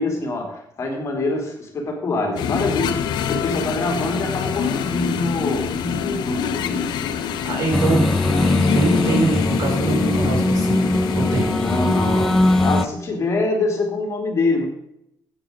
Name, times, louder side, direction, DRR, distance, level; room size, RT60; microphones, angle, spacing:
voice 1, 0.0-3.0 3.3-6.9 11.5-14.7, left 2 dB, 40° left, 1 dB, 3.2 m, -25 dB
sound 1, 2.4-12.9, left 7 dB, 80° left, 1.0 m, -26 dB
voice 2, 7.4-8.0 8.7-10.8 11.1-11.5, right 2 dB, 50° right, -1 dB, 5.3 m, -23 dB
sound 2, 7.7-12.9, left 1 dB, 5° left, 0.4 m, -20 dB
12.5 x 8.7 x 5.2 m, 0.76 s
cardioid pair, 145°, 7 cm